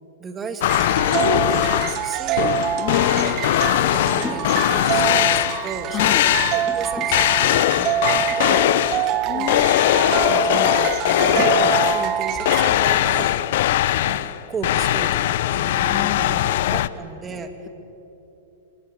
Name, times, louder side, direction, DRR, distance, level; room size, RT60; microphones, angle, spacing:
voice 1, 0.2-2.5 2.9-8.7 9.3-9.5 9.9-13.3 14.1-17.5, right 4 dB, 20° right, 8 dB, 2.2 m, -35 dB
sound 1, 0.6-2.1 2.4-5.7 6.0-6.8 7.1-9.1 9.5-12.2 12.5-16.9, left 13 dB, 65° left, 0.7 m, -20 dB
sound 2, 0.7-12.7, right 10 dB, 40° right, 1.3 m, -25 dB
voice 2, 2.4-3.4 5.9-6.3 9.2-9.7 15.9-16.5 16.9-17.0, left 11 dB, 35° left, 9 dB, 1.9 m, -30 dB
sound 3, 2.7-12.4, left 2 dB, 10° left, 2.6 m, -41 dB
25.0 x 19.0 x 8.4 m, 3.0 s
hypercardioid pair, 125°, 0 cm